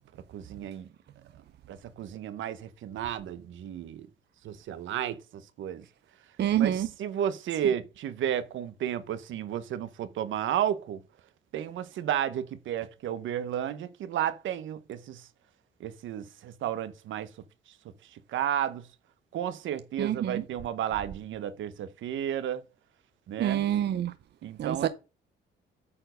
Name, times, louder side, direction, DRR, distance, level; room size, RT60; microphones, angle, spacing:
voice 1, 0.3-0.9 1.7-4.1 4.4-5.8 6.5-11.0 11.5-15.3 15.8-17.3 18.1-18.9 19.3-22.6 23.3-23.6 24.4-24.9, right 10 dB, 75° right, 0.9 m, -32 dB
voice 2, 6.4-6.9 20.0-20.4 23.4-24.1 24.6-24.9, right 11 dB, 60° right, 0.6 m, -27 dB
8.6 x 4.4 x 5.1 m
cardioid pair, 90°, 20 cm